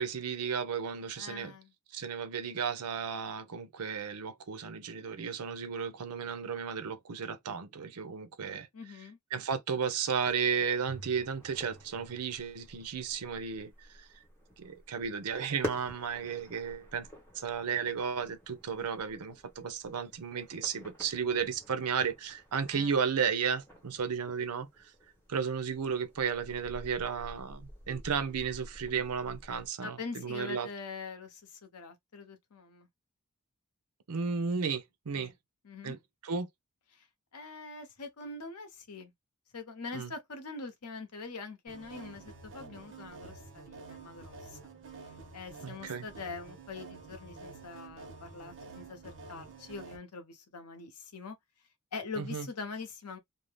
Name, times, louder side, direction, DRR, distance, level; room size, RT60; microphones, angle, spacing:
voice 1, 0.0-1.5 1.9-8.7 9.3-14.2 14.6-17.1 17.3-24.7 25.3-30.7 34.1-35.3 35.8-36.0 36.2-36.5 39.9-40.1 45.6-46.0 52.2-52.5, right 6 dB, 80° right, 0.6 m, -34 dB
voice 2, 1.2-1.7 8.7-9.2 22.7-22.9 29.8-32.9 35.1-35.3 35.6-36.0 36.9-37.1 37.3-39.1 39.5-44.6 45.3-51.4 51.9-53.2, left 4 dB, 85° left, 0.8 m, -43 dB
sound 1, 10.1-29.7, left 1 dB, 10° left, 1.1 m, -49 dB
sound 2, 41.7-50.0, right 4 dB, 60° right, 1.0 m, -49 dB
2.6 x 2.1 x 3.2 m
head